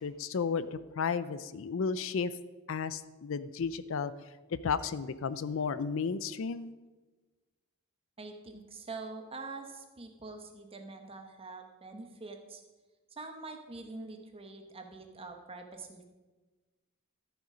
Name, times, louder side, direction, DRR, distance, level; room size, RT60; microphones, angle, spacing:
voice 1, 0.0-2.3 2.7-4.1 4.6-6.7, left 5 dB, 65° left, 15 dB, 0.5 m, -33 dB
voice 2, 8.2-12.6 13.1-16.1, right 3 dB, 25° right, 4 dB, 1.2 m, -45 dB
13.5 x 6.9 x 5.0 m, 1.2 s
head